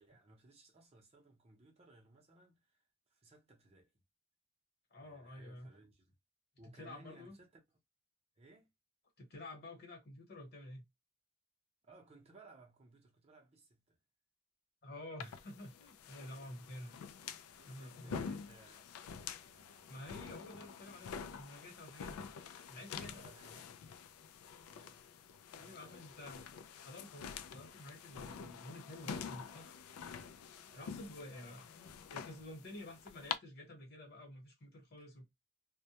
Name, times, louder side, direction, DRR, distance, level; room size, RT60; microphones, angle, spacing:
voice 1, 0.0-4.0 5.0-6.1 6.6-7.6 8.4-8.7 11.8-14.0 16.4-16.7 17.6-18.9 19.4-20.2 23.0-23.9 24.6-25.1 25.6-26.3 29.4-29.8 30.5-31.7 35.0-35.1, right 2 dB, 30° right, 0.6 m, -62 dB
voice 2, 4.9-5.7 6.8-7.4 9.2-10.8 14.8-17.0 17.7-18.3 19.9-22.3 22.7-23.2 25.6-26.4 26.7-29.7 30.7-31.7 32.1-35.2, left 1 dB, 50° left, 1.0 m, -50 dB
sound 1, 15.2-33.4, left 7 dB, 85° left, 0.3 m, -47 dB
2.1 x 2.1 x 2.8 m
head